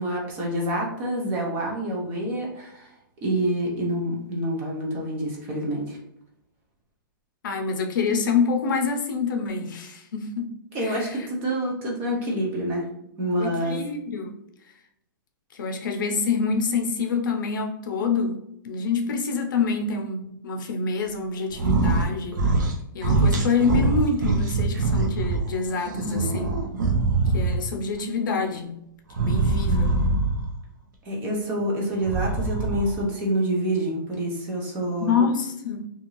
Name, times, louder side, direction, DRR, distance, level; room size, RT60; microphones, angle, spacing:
voice 1, 0.0-2.9 3.2-6.0 10.7-12.9 13.2-13.9 26.0-26.2 31.0-35.1, right 1 dB, 15° right, -2 dB, 0.4 m, -27 dB
voice 2, 7.4-10.5 10.8-11.3 13.4-14.3 15.5-18.4 18.6-22.5 22.9-26.5 27.3-28.8 29.2-30.0 35.0-35.8, left 5 dB, 60° left, 3 dB, 0.5 m, -26 dB
sound 1, 21.5-22.1 22.3-22.8 23.0-25.4 25.8-27.7 29.1-30.5 31.9-33.0, right 3 dB, 55° right, 0.6 m, -23 dB
2.5 x 2.3 x 3.0 m, 0.78 s
hypercardioid pair, 170°, 12 cm